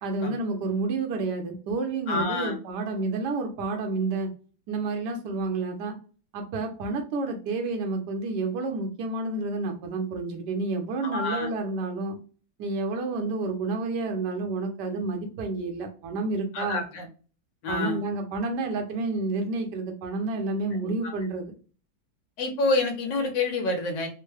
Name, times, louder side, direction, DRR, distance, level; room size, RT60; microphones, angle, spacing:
voice 1, 0.0-4.3 4.7-6.0 6.3-12.2 12.6-16.8 17.7-21.5, right 3 dB, 65° right, 4 dB, 1.3 m, -30 dB
voice 2, 2.1-2.6 11.0-11.5 16.5-17.1 17.6-18.0 20.8-20.9 22.4-24.1, left 3 dB, 70° left, 3 dB, 1.5 m, -27 dB
3.5 x 2.2 x 3.2 m, 0.37 s
omnidirectional pair, 2.1 m